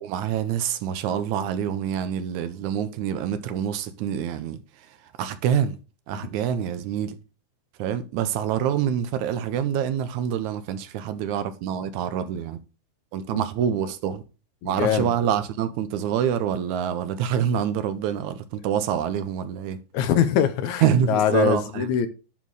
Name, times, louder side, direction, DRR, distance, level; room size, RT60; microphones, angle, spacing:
voice 1, 0.0-5.8 6.1-7.2 7.8-12.6 13.1-14.2 14.6-19.8 20.8-21.9, right 9 dB, 80° right, 2.0 m, -26 dB
voice 2, 14.6-15.1 19.9-22.1, left 9 dB, 80° left, 2.0 m, -23 dB
11.0 x 4.4 x 4.7 m
omnidirectional pair, 3.6 m